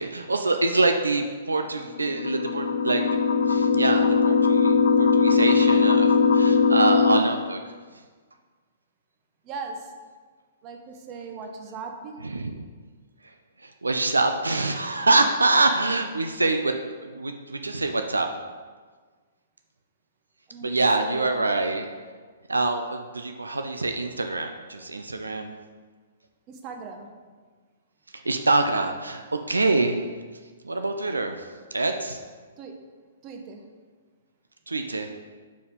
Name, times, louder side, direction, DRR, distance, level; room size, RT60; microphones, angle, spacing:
voice 1, 0.0-3.2 3.4-7.7 12.2-12.6 13.2-13.3 13.6-18.3 20.6-21.8 22.5-25.5 28.1-30.0 30.6-32.2 34.7-35.2, right 3 dB, 85° right, 5 dB, 0.4 m, -25 dB
sound 1, 1.9-7.2, left 5 dB, 65° left, 0.4 m, -20 dB
voice 2, 9.4-9.9 10.6-12.2 20.5-21.4 26.5-27.1 32.6-32.7 33.2-33.6, right 4 dB, 30° right, 3 dB, 0.9 m, -39 dB
5.1 x 4.6 x 5.2 m, 1.5 s
figure-of-eight pair, 120°, 0 cm